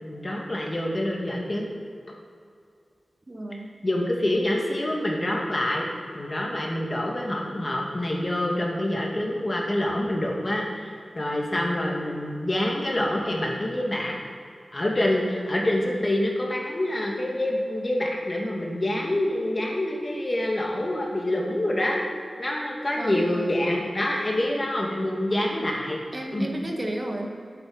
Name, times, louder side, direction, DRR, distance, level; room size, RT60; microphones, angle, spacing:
voice 1, 0.0-1.7 3.8-5.9 6.1-14.2 14.7-22.0 22.4-26.0 26.3-26.5, left 1 dB, 35° left, -1 dB, 2.3 m, -26 dB
voice 2, 3.3-3.7 23.0-23.6 26.1-27.5, right 1 dB, 40° right, 2 dB, 1.5 m, -33 dB
10.5 x 8.5 x 5.6 m, 2.3 s
cardioid pair, 50°, 0 cm